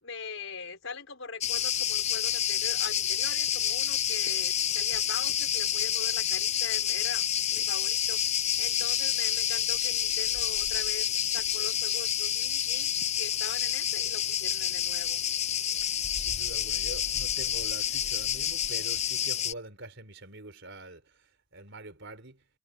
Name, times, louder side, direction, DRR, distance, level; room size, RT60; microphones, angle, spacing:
voice 1, 0.0-7.2 7.5-15.2, left 4 dB, 65° left, 5.8 m, -42 dB
Cricket, 1.4-19.5, left 10 dB, 30° left, 0.6 m, -28 dB
voice 2, 15.8-21.2 21.5-22.4, right 2 dB, 55° right, 4.9 m, -45 dB
head